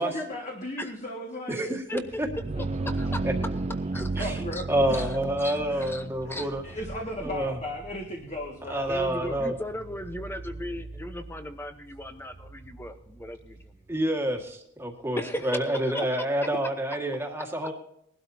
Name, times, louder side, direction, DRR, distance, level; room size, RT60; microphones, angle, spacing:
voice 1, 0.0-1.6 4.2-5.0 5.4-5.9 6.2-8.9 16.5-16.6, equal, 30° left, -1 dB, 1.8 m, -36 dB
voice 2, 1.5-2.3 3.2-3.3 4.0-4.4 4.7-6.6 7.2-7.5 8.7-9.6 13.9-17.7, right 1 dB, 10° right, 0 dB, 1.8 m, -28 dB
sound 1, 2.0-13.7, right 3 dB, 30° right, 0.4 m, -35 dB
voice 3, 2.8-3.3 3.9-4.3 4.5-4.6 5.0-5.1 5.4-6.5 7.2-7.3 8.9-13.6 15.2-16.0, left 1 dB, 10° left, 8 dB, 0.9 m, -37 dB
21.0 x 12.5 x 2.8 m, 0.74 s
head